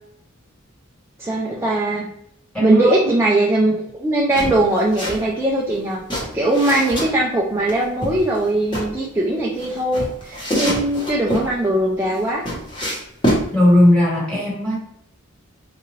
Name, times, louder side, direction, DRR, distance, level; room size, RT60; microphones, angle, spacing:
voice 1, 1.2-2.1 2.6-12.4, right 1 dB, 10° right, -4 dB, 0.4 m, -20 dB
voice 2, 2.5-2.9 13.5-14.7, left 1 dB, 5° left, -5 dB, 1.4 m, -16 dB
sound 1, 4.4-5.2 5.5-7.1 7.7-8.9 9.6-11.5 12.0-13.5, equal, 25° left, 1.1 m, -25 dB
3.7 x 2.5 x 3.0 m, 0.73 s
head